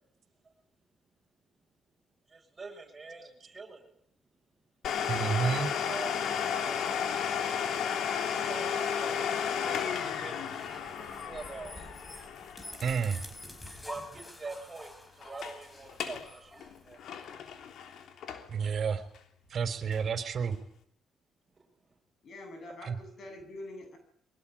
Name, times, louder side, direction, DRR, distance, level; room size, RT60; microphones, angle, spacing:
voice 1, 2.3-3.8 5.8-7.0 8.5-9.2 9.6-11.9 13.8-17.0, right 4 dB, 25° right, -1 dB, 7.6 m, -45 dB
Domestic sounds home sounds, 4.8-14.3 14.5-14.6 15.2-15.6 15.9-16.3 16.6-18.7 19.1-19.2 19.9-20.0, left 7 dB, 75° left, 3.2 m, -33 dB
voice 2, 5.1-5.7 12.8-13.2 18.5-19.0 19.5-20.6 22.8-22.9, right 6 dB, 50° right, 8 dB, 4.6 m, -30 dB
sound 1, 10.4-17.3, left 1 dB, 15° left, 5.4 m, -48 dB
voice 3, 22.2-24.0, left 1 dB, 55° left, 7 dB, 8.0 m, -45 dB
23.5 x 23.0 x 8.9 m, 0.68 s
cardioid pair, 90°, 0 cm